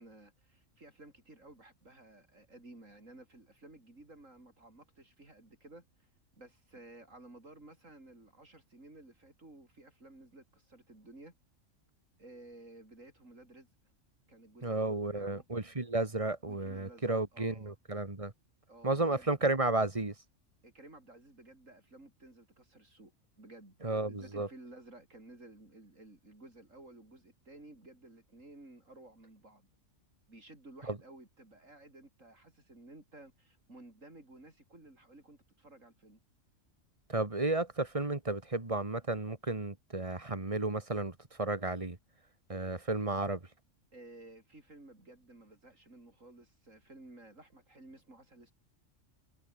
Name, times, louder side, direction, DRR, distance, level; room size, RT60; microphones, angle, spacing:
voice 1, 0.0-6.1 6.4-11.3 12.2-13.7 14.3-15.5 16.4-17.7 18.7-19.5 20.6-23.1 23.4-23.8 24.1-29.7 30.3-36.2 43.9-48.5, right 2 dB, 80° right, 6.4 m, -55 dB
voice 2, 14.6-18.3 18.8-20.1 23.8-24.5 30.9-31.0 37.1-42.0 42.5-43.4, right 2 dB, 25° right, 1.8 m, -33 dB
omnidirectional pair, 1.3 m